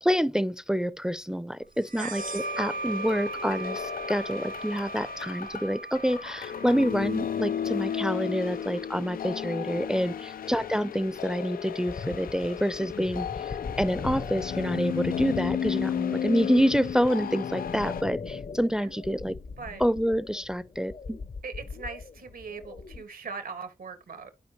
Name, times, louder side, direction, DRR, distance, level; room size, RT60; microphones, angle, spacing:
voice 1, 0.0-19.4 19.8-21.2, equal, 5° right, 0.5 m, -27 dB
sound 1, 1.8-9.1, right 3 dB, 65° right, 0.6 m, -39 dB
sound 2, 2.2-18.0, left 9 dB, 85° left, 0.4 m, -34 dB
sound 3, 11.9-23.0, left 4 dB, 55° left, 0.8 m, -40 dB
voice 2, 21.4-24.3, right 5 dB, 85° right, 1.8 m, -40 dB
11.5 x 5.0 x 3.1 m
cardioid pair, 70°, 15 cm